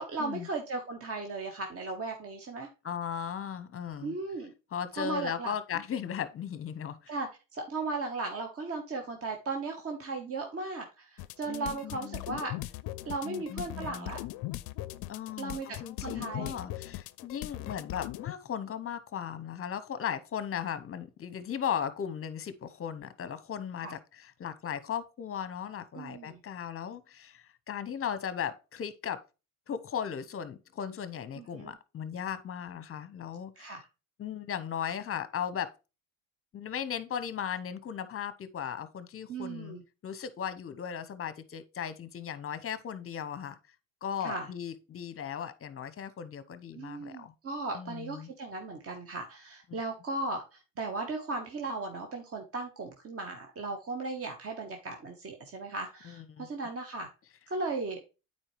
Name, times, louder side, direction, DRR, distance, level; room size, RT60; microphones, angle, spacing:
voice 1, 0.0-2.7 4.0-4.5 5.0-5.5 7.1-12.5 13.1-14.2 15.4-16.5 23.8-23.9 25.9-26.4 31.4-31.7 33.6-33.9 39.3-39.8 44.2-44.5 46.7-57.1 57.5-58.0, right 3 dB, 30° right, 1.2 m, -36 dB
voice 2, 2.8-4.1 4.7-7.1 11.5-12.2 13.2-14.1 15.1-29.2 29.7-33.8 34.2-35.7 36.5-39.8 40.0-43.6 44.0-47.3 47.7-48.3 56.0-56.5, left 8 dB, 30° left, 0.9 m, -37 dB
sound 1, 11.2-18.3, left 16 dB, 55° left, 0.5 m, -39 dB
8.9 x 4.5 x 3.1 m
supercardioid pair, 85°, 44 cm